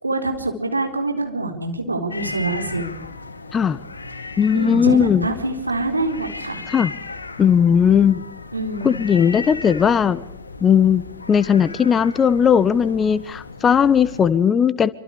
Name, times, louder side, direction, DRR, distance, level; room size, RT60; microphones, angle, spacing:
voice 1, 0.0-2.9 4.5-6.6 8.5-8.9, right 2 dB, 80° right, 4 dB, 4.0 m, -25 dB
sound 1, 2.1-14.3, left 3 dB, 75° left, 2.3 m, -36 dB
voice 2, 4.4-5.3 6.7-6.9 7.4-8.2 8.8-10.2 10.6-11.0 11.3-14.9, left 7 dB, 20° left, 17 dB, 1.3 m, -17 dB
27.0 x 25.0 x 5.1 m, 0.83 s
figure-of-eight pair, 90°, 0 cm